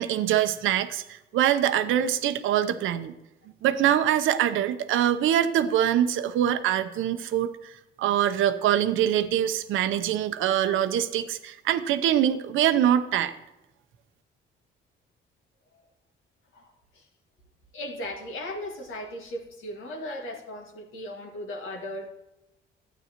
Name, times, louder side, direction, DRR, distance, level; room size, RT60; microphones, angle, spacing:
voice 1, 0.0-3.1 3.6-13.3, right 10 dB, 85° right, 11 dB, 0.7 m, -24 dB
voice 2, 16.5-17.0 17.7-22.2, left 1 dB, 85° left, 1 dB, 1.8 m, -37 dB
12.5 x 9.1 x 2.9 m, 0.98 s
cardioid pair, 90°, 20 cm